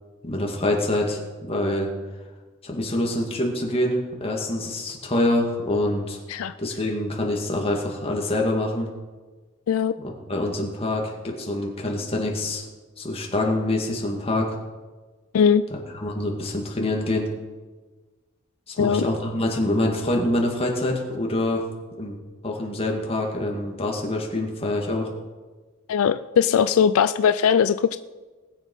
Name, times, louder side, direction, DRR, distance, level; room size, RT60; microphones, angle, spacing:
voice 1, 0.2-1.2 1.5-1.9 2.6-6.2 6.6-8.9 10.3-12.7 13.0-14.5 15.9-17.3 18.7-21.6 22.0-22.2 22.4-25.1, left 1 dB, 30° left, -1 dB, 2.2 m, -25 dB
voice 2, 15.3-15.7 18.8-19.1 25.9-28.0, left 7 dB, 80° left, 13 dB, 0.4 m, -20 dB
19.5 x 7.3 x 5.5 m, 1.3 s
head